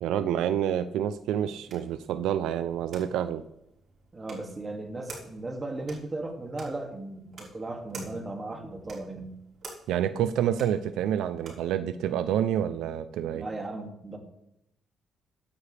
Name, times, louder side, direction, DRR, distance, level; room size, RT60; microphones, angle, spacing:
voice 1, 0.0-3.4 9.9-13.5, right 10 dB, 85° right, 12 dB, 0.5 m, -28 dB
sound 1, 1.0-11.8, right 3 dB, 55° right, 4.4 m, -50 dB
voice 2, 4.1-9.3 13.3-14.2, right 2 dB, 25° right, 3 dB, 2.3 m, -36 dB
14.5 x 9.6 x 3.4 m, 0.81 s
cardioid pair, 90°, 0 cm